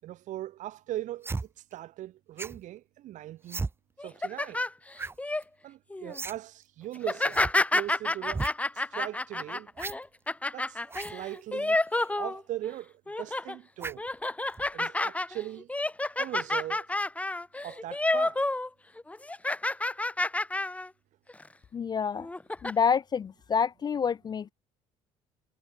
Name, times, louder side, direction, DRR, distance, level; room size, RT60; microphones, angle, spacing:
voice 1, 0.0-3.7 4.0-4.6 5.6-7.4 7.7-8.5 8.7-9.7 10.5-10.8 11.1-11.8 12.2-14.1 14.7-15.7 16.2-16.9 17.6-18.4, right 14 dB, 65° right, 4.0 m, -39 dB
sound 1, 1.2-1.5 2.4-2.6 3.5-3.7 5.0-5.2 5.4-5.5 6.1-6.4 6.6-6.7 7.3-7.5 8.3-8.5 9.8-10.0 10.9-11.1 11.9-12.1 13.8-14.1 14.5-14.7, right 3 dB, 15° right, 0.7 m, -35 dB
sound 2, 4.0-5.4 5.9-6.2 7.0-12.7 13.1-13.5 14.0-18.7 19.0-20.9 21.3-21.5 22.2-22.7, left 2 dB, 10° left, 1.0 m, -29 dB
voice 2, 21.7-22.3 22.6-24.5, left 6 dB, 30° left, 0.4 m, -28 dB
supercardioid pair, 85°, 14 cm